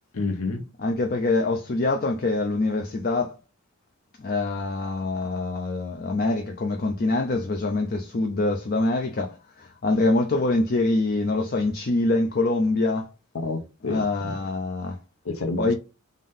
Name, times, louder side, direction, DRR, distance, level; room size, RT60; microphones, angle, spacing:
voice 1, 0.1-0.6 13.3-14.4 15.2-15.7, left 3 dB, 70° left, 0.8 m, -29 dB
voice 2, 0.8-3.3 4.2-13.1 13.8-15.0 15.6-15.7, left 2 dB, 45° left, 0.5 m, -25 dB
3.6 x 2.6 x 3.5 m
head